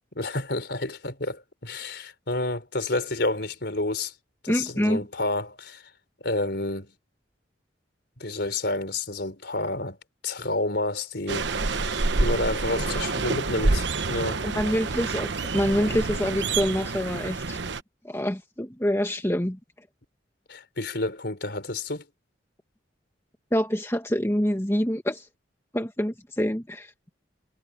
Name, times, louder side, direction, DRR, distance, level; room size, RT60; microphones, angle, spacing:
voice 1, 0.1-4.1 4.4-5.8 6.2-6.9 8.2-10.0 10.2-14.4 20.5-22.0, left 2 dB, 60° left, 4.9 m, -30 dB
voice 2, 4.5-5.0 14.4-17.6 18.0-19.6 23.5-25.3 25.7-26.9, equal, 15° left, 1.7 m, -26 dB
sound 1, 11.3-17.8, right 3 dB, 70° right, 1.0 m, -27 dB
head